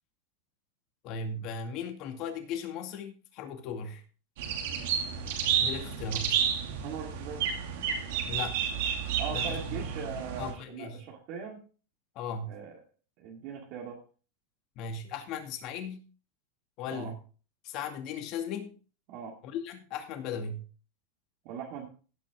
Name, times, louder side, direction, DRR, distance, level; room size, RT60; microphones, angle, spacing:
voice 1, 1.0-4.0 5.6-6.4 8.3-8.6 9.3-9.8 10.4-11.1 12.2-12.6 14.8-16.0 16.8-17.2 17.6-18.7 19.4-20.6, left 5 dB, 45° left, 5 dB, 2.2 m, -37 dB
sound 1, 4.4-10.5, right 8 dB, 70° right, 2.5 m, -31 dB
voice 2, 6.8-7.4 9.2-11.6 12.5-12.8 13.2-14.0 16.9-17.1 19.1-19.3 21.4-21.9, right 6 dB, 50° right, 0 dB, 2.2 m, -40 dB
16.0 x 6.2 x 3.7 m, 0.38 s
supercardioid pair, 140°, 0 cm